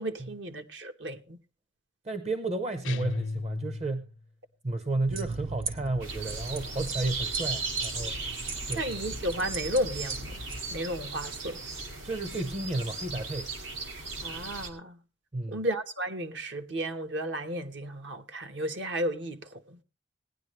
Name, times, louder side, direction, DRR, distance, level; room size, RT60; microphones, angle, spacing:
voice 1, 0.0-1.4 8.7-10.4 10.7-11.6 14.2-15.0 15.5-19.8, equal, 70° right, 1.1 m, -33 dB
voice 2, 2.0-4.1 4.6-8.2 8.7-8.9 12.0-13.5 15.3-15.6, right 2 dB, 35° right, 0.7 m, -32 dB
Dist Chr A oct up pm, 2.8-4.2, left 3 dB, 85° left, 0.7 m, -35 dB
sound 1, 5.1-10.6, right 3 dB, 55° right, 1.7 m, -39 dB
sound 2, 6.0-14.7, right 4 dB, 85° right, 2.2 m, -37 dB
18.0 x 10.0 x 3.1 m
head